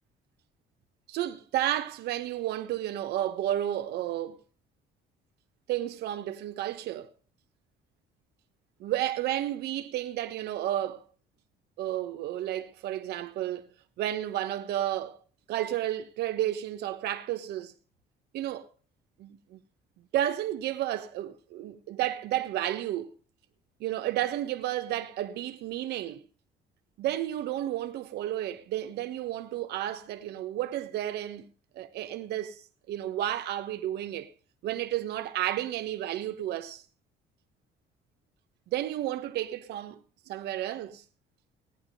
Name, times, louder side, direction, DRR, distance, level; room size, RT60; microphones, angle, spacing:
voice 1, 1.1-4.4 5.7-7.1 8.8-11.0 11.8-13.7 14.0-15.2 15.5-17.7 18.3-18.7 19.2-19.6 20.1-23.1 23.8-26.2 27.0-31.5 31.7-34.3 34.6-36.8 38.7-40.0 40.3-41.0, right 13 dB, 75° right, 1.2 m, -32 dB
15.5 x 10.5 x 5.4 m
cardioid pair, 110°, 17 cm